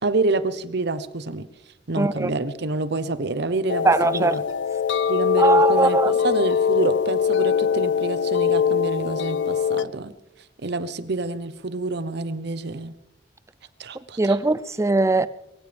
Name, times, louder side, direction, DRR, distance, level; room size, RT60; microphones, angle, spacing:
voice 1, 0.0-1.5 1.9-4.4 5.1-10.1 10.6-12.9 13.8-14.4, right 3 dB, 65° right, 0.9 m, -27 dB
voice 2, 2.0-2.3 3.8-4.4 5.4-6.1 14.2-15.3, right 3 dB, 15° right, 0.4 m, -20 dB
sound 1, 3.7-9.8, left 7 dB, 75° left, 0.5 m, -22 dB
23.0 x 16.5 x 3.4 m
head